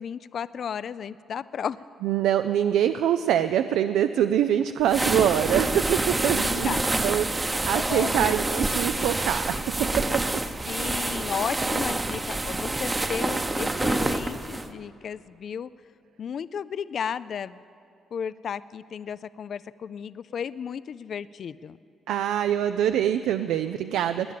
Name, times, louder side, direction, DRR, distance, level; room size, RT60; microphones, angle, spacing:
voice 1, 0.0-1.8 6.3-6.9 7.7-8.3 10.7-15.7 16.2-17.6 18.1-21.8, left 7 dB, 55° left, 17 dB, 0.3 m, -34 dB
voice 2, 2.0-10.2 22.1-24.3, right 10 dB, 85° right, 10 dB, 0.4 m, -24 dB
sound 1, 4.8-14.7, right 2 dB, 20° right, 0.8 m, -27 dB
18.5 x 10.0 x 7.6 m, 2.5 s
cardioid pair, 90°, 0 cm